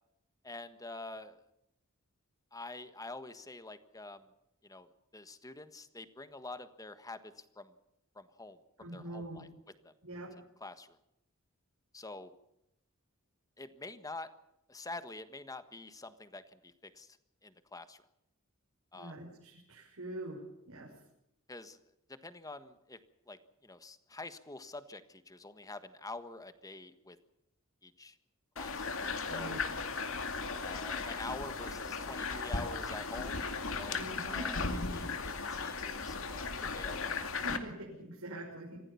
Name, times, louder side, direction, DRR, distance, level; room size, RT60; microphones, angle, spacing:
voice 1, 0.4-1.4 2.5-4.3 4.6-7.7 8.1-9.5 9.8-9.9 10.6-11.0 11.9-12.3 13.6-14.3 14.7-17.2 17.4-18.0 18.9-19.2 21.5-21.8 22.1-23.0 23.3-27.2 27.8-28.1 28.6-28.9 29.3-29.6 30.4-37.2, left 2 dB, 15° left, 11 dB, 1.5 m, -47 dB
voice 2, 8.8-9.4 10.0-10.3 18.9-20.4 20.7-20.9 29.3-29.6 33.9-34.5 37.2-38.8, right 1 dB, 90° right, -3 dB, 6.1 m, -44 dB
sound 1, 28.6-37.6, left 4 dB, 70° left, 2.4 m, -36 dB
26.0 x 16.0 x 7.1 m, 0.82 s
head